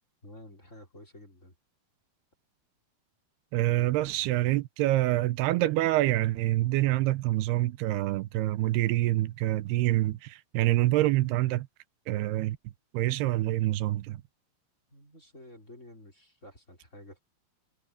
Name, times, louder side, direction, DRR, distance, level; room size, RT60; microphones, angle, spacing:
voice 1, 0.2-1.6 3.8-4.3 14.9-17.2, left 1 dB, 20° left, 5.0 m, -51 dB
voice 2, 3.5-11.7 12.1-12.6 12.9-14.2, right 16 dB, 85° right, 2.9 m, -26 dB
omnidirectional pair, 4.5 m